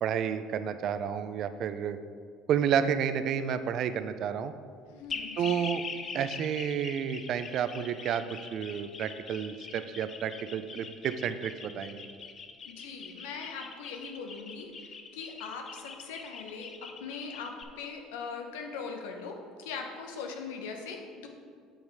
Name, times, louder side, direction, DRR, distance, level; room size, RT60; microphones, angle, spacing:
voice 1, 0.0-2.0 2.5-4.5 5.4-5.8 6.1-8.2 8.5-12.1, right 8 dB, 55° right, 11 dB, 0.4 m, -30 dB
voice 2, 4.9-5.6 12.6-16.7 17.0-21.3, left 5 dB, 90° left, 3 dB, 0.9 m, -41 dB
sound 1, 5.1-17.6, left 5 dB, 40° left, 0.7 m, -43 dB
7.2 x 5.3 x 4.7 m, 2.1 s
supercardioid pair, 90°, 0 cm